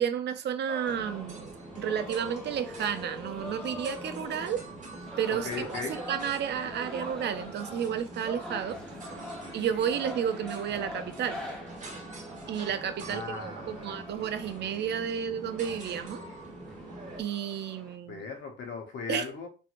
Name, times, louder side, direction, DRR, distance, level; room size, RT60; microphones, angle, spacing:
voice 1, 0.0-4.6 5.2-8.8 9.5-11.4 12.5-13.4 13.7-16.2 17.2-18.3 19.1-19.2, right 8 dB, 60° right, 0.4 m, -32 dB
sound 1, 0.7-18.0, left 1 dB, 5° left, 1.0 m, -45 dB
sound 2, 0.8-17.2, right 2 dB, 40° right, 1.2 m, -44 dB
voice 2, 5.3-6.0 13.1-14.0 18.1-19.5, left 4 dB, 70° left, 1.0 m, -37 dB
3.1 x 2.6 x 2.5 m
cardioid pair, 90°, 20 cm